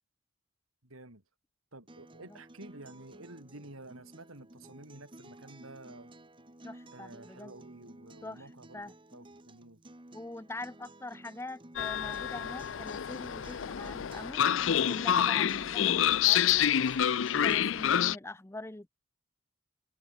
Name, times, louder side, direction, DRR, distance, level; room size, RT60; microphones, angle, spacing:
voice 1, 0.8-1.2 1.7-6.1 6.9-9.8, right 2 dB, 90° right, 4.5 m, -50 dB
Acoustic guitar, 1.9-17.9, right 1 dB, 25° right, 1.5 m, -53 dB
voice 2, 6.6-7.5 8.2-8.9 10.1-14.4 14.9-16.5 17.3-18.9, left 2 dB, 10° left, 0.6 m, -44 dB
Train, 11.8-18.2, left 9 dB, 70° left, 0.5 m, -28 dB
head